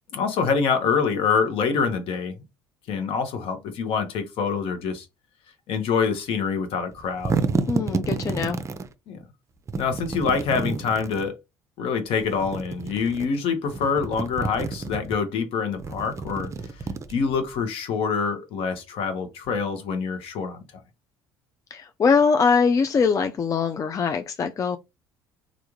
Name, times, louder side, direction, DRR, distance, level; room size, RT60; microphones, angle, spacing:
voice 1, 0.1-2.3 2.9-5.1 5.7-7.3 9.1-9.2 9.8-11.3 11.8-16.5 17.1-20.6, left 5 dB, 60° left, 1.0 m, -25 dB
sound 1, 6.9-8.9 9.7-11.3 12.2-13.3 13.6-15.2 15.7-17.5, right 4 dB, 25° right, 0.5 m, -30 dB
voice 2, 7.7-8.6 21.7-24.8, left 5 dB, 30° left, 0.4 m, -22 dB
3.4 x 2.5 x 3.0 m
hypercardioid pair, 60°, 11 cm